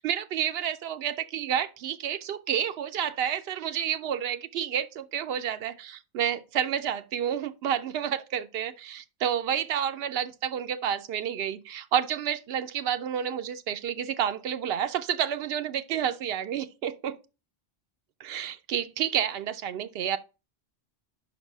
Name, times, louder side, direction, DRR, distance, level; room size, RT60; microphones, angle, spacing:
voice 1, 0.0-17.2 18.2-20.2, right 9 dB, 80° right, 0.8 m, -30 dB
5.4 x 4.0 x 6.0 m
omnidirectional pair, 1.0 m